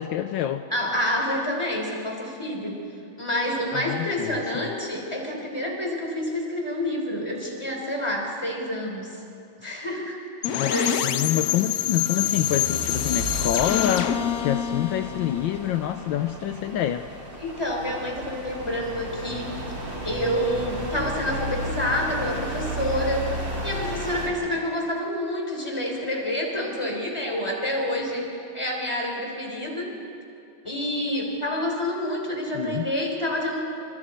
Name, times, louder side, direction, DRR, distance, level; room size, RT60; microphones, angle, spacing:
voice 1, 0.0-0.6 3.7-4.6 10.5-10.7 11.0-17.1 32.5-32.9, left 11 dB, 75° left, 8 dB, 1.4 m, -27 dB
voice 2, 0.7-2.8 3.2-9.2 9.6-10.2 10.7-10.9 17.4-19.6 20.0-30.0 30.6-33.6, left 1 dB, 15° left, 0 dB, 3.7 m, -28 dB
sound 1, 10.4-16.2, left 10 dB, 60° left, 1.1 m, -27 dB
sound 2, 11.7-15.8, left 2 dB, 40° left, 1.5 m, -35 dB
sound 3, 12.9-24.3, right 1 dB, 70° right, 4.6 m, -34 dB
26.5 x 26.0 x 4.4 m, 2.7 s
omnidirectional pair, 2.1 m